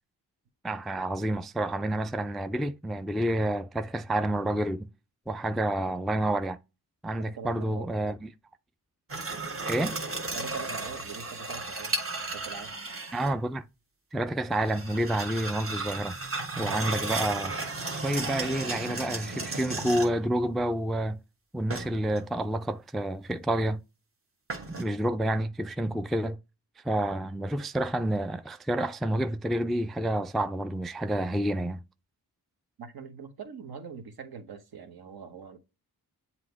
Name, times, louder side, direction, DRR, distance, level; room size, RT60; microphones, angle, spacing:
voice 1, 0.6-4.9 5.3-6.6 7.0-8.3 9.7-10.0 13.1-13.6 14.1-16.1 16.6-17.5 18.0-21.2 21.5-23.8 24.7-26.4 26.8-31.8, right 1 dB, ahead, 0.3 m, -29 dB
voice 2, 7.3-7.9 10.3-12.0 12.3-12.8 32.8-35.6, right 6 dB, 65° right, 1.2 m, -43 dB
sound 1, 9.1-13.3 14.5-20.3 21.7-22.3 24.5-24.8, right 3 dB, 35° right, 1.3 m, -34 dB
7.7 x 2.8 x 4.6 m
cardioid pair, 60°, 40 cm